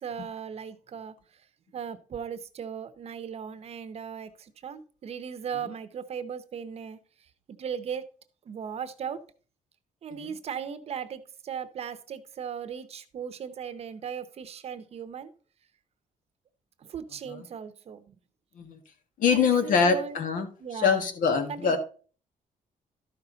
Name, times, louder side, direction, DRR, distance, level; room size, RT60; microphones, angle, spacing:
voice 1, 0.0-1.1 1.7-7.0 7.6-8.0 8.5-9.2 10.0-15.3 16.9-18.1 19.3-20.2 20.6-21.0 21.5-21.8, right 7 dB, 45° right, 12 dB, 0.8 m, -37 dB
voice 2, 19.2-21.8, left 6 dB, 70° left, 7 dB, 1.7 m, -25 dB
12.5 x 5.7 x 3.9 m, 0.39 s
cardioid pair, 175°, 14 cm